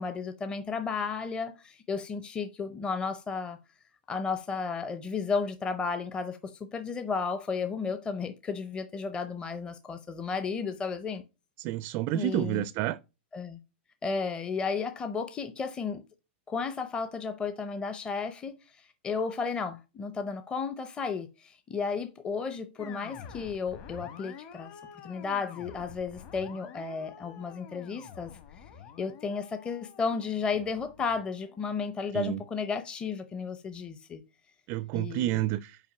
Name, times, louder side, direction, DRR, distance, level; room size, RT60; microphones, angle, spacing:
voice 1, 0.0-3.6 4.1-11.2 12.1-12.7 13.3-13.6 14.0-16.0 16.5-24.7 25.0-28.6 29.0-34.2 34.9-35.5, left 5 dB, 15° left, 0.6 m, -33 dB
voice 2, 11.6-13.0 32.1-32.4 34.7-35.8, right 15 dB, 35° right, 0.4 m, -30 dB
sound 1, 22.8-32.1, left 7 dB, 40° left, 1.3 m, -48 dB
5.7 x 4.7 x 5.6 m
hypercardioid pair, 140°, 6 cm